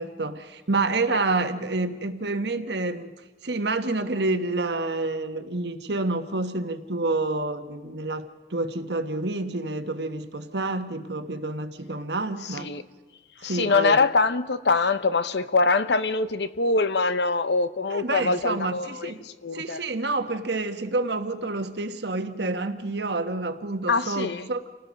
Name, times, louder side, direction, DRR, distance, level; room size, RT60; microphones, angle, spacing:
voice 1, 0.0-3.1 3.4-12.7 13.4-14.0 17.9-19.2 19.5-24.6, right 2 dB, 75° right, 1.4 m, -28 dB
voice 2, 13.4-19.1 19.4-19.8 23.9-24.5, left 3 dB, 80° left, 0.9 m, -23 dB
29.0 x 18.5 x 5.3 m
head